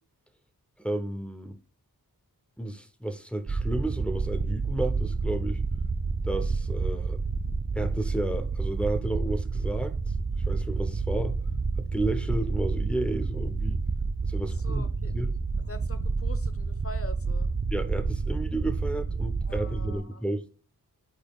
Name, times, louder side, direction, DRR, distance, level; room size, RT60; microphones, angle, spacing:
voice 1, 0.8-1.6 2.6-5.6 6.2-7.2 7.7-10.1 10.5-11.4 11.8-13.8 14.2-14.8 15.1-15.3 17.7-20.5, right 1 dB, 5° left, 0.7 m, -32 dB
sound 1, 3.5-20.0, right 4 dB, 25° right, 0.4 m, -29 dB
voice 2, 14.4-15.2 15.6-17.5 19.5-20.2, left 2 dB, 35° left, 0.9 m, -44 dB
12.0 x 4.0 x 2.3 m
wide cardioid pair, 85°, 38 cm